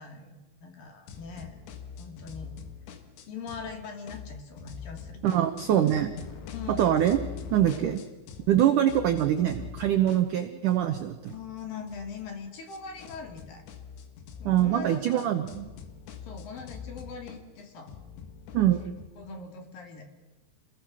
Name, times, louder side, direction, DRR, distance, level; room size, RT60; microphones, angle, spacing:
voice 1, 0.0-1.6 2.0-2.5 3.3-5.4 6.5-7.0 7.6-7.9 11.3-13.6 14.4-15.3 16.2-17.9 19.2-20.0, left 5 dB, 55° left, 4 dB, 3.9 m, -41 dB
sound 1, 1.1-3.7 4.0-8.6 8.9-19.1, left 7 dB, 80° left, 4.0 m, -44 dB
voice 2, 5.2-6.1 6.7-7.2 7.5-8.0 8.5-11.3 14.4-15.7 18.5-18.8, right 11 dB, 80° right, 8 dB, 1.8 m, -24 dB
28.0 x 20.5 x 6.3 m, 1.2 s
omnidirectional pair, 5.2 m